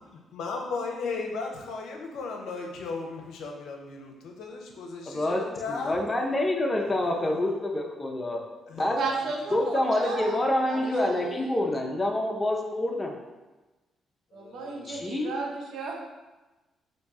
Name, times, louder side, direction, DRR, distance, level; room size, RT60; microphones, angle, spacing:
voice 1, 0.3-6.1 6.8-7.6 8.7-8.9 9.2-10.0 14.3-15.0, left 4 dB, 80° left, 2 dB, 0.5 m, -37 dB
voice 2, 5.1-5.4 5.7-8.4 8.7-9.0 9.5-13.2 14.9-15.3, left 1 dB, 20° left, 0 dB, 0.5 m, -27 dB
voice 3, 9.0-10.4 10.7-11.6 14.3-16.0, right 4 dB, 70° right, 0 dB, 0.6 m, -34 dB
2.9 x 2.6 x 3.5 m, 1.1 s
cardioid pair, 90°, 0 cm